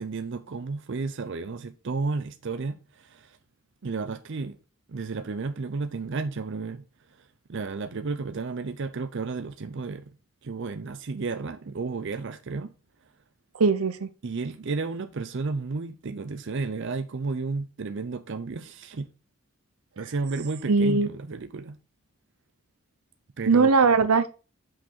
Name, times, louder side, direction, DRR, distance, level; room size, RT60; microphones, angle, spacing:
voice 1, 0.0-3.4 3.8-4.6 4.9-6.9 7.2-10.1 10.4-12.7 14.2-19.1 20.0-21.8 23.4-23.7, right 4 dB, 55° right, 0.5 m, -32 dB
voice 2, 13.5-14.1 20.7-21.1 23.5-24.3, right 4 dB, 85° right, 0.7 m, -20 dB
5.9 x 5.2 x 4.2 m
head